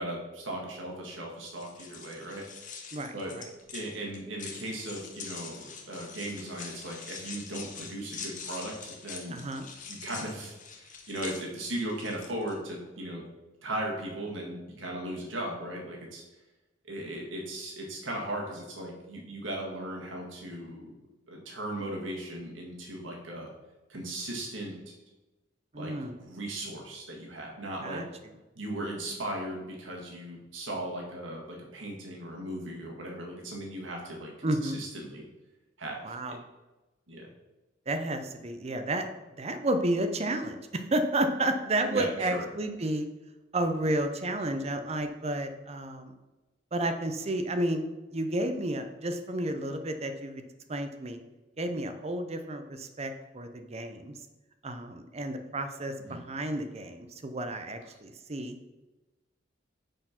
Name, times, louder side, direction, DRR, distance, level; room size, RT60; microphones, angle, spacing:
voice 1, 0.0-2.4 3.1-3.3 3.7-9.4 9.9-13.2 13.6-16.2 16.8-20.9 21.3-23.5 23.9-24.8 25.7-25.9 26.2-28.0 28.5-35.3 35.8-36.1 37.1-37.3 41.9-42.5 56.0-56.2, right 1 dB, 85° right, -1 dB, 1.7 m, -37 dB
sound 1, 1.4-12.5, left 6 dB, 40° left, 1.0 m, -44 dB
voice 2, 2.9-3.5 9.3-9.7 25.7-26.1 27.8-28.1 34.4-34.8 36.0-36.4 37.9-39.1 39.4-43.1 43.5-46.1 46.7-47.8 48.1-50.4 50.7-51.2 51.6-54.1 54.6-58.6, right 1 dB, 35° right, 7 dB, 0.7 m, -31 dB
6.4 x 4.4 x 5.8 m, 1.1 s
head